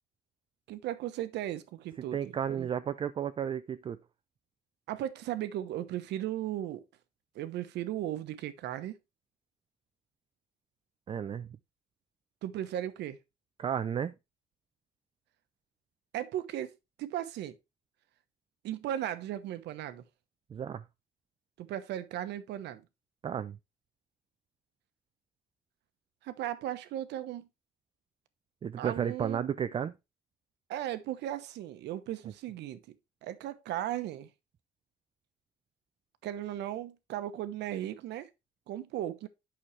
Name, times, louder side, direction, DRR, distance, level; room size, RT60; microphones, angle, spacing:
voice 1, 0.7-2.7 4.9-6.8 7.3-9.0 12.4-13.2 16.1-16.7 17.0-17.5 18.6-20.0 21.6-22.8 26.2-27.5 28.8-29.5 30.7-32.8 33.2-34.3 36.2-38.3 38.7-39.3, right 12 dB, 85° right, 1.0 m, -36 dB
voice 2, 2.1-4.0 11.1-11.5 13.6-14.1 20.5-20.8 23.2-23.6 28.6-29.9, right 8 dB, 30° right, 0.4 m, -33 dB
8.8 x 6.3 x 3.1 m
cardioid pair, 135°, 17 cm